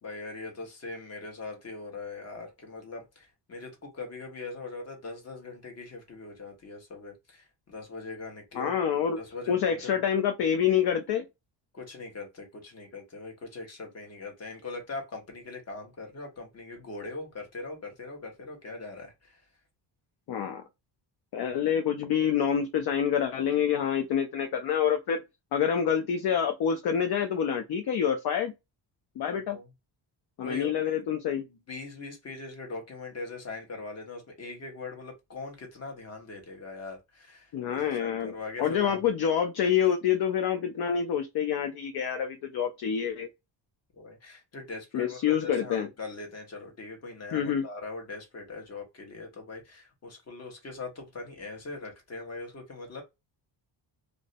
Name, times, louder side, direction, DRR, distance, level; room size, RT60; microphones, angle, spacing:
voice 1, 0.0-8.7 9.2-10.0 11.7-19.4 29.5-29.7 30.4-30.9 31.3-39.0 43.9-53.0, left 3 dB, 35° left, 1.0 m, -41 dB
voice 2, 8.6-9.2 9.5-11.2 20.3-20.6 21.3-25.2 25.5-28.5 29.2-29.6 30.4-31.4 37.5-38.3 38.6-43.3 44.9-45.9 47.3-47.7, left 8 dB, 55° left, 0.5 m, -27 dB
2.5 x 2.0 x 2.5 m
cardioid pair, 110°, 47 cm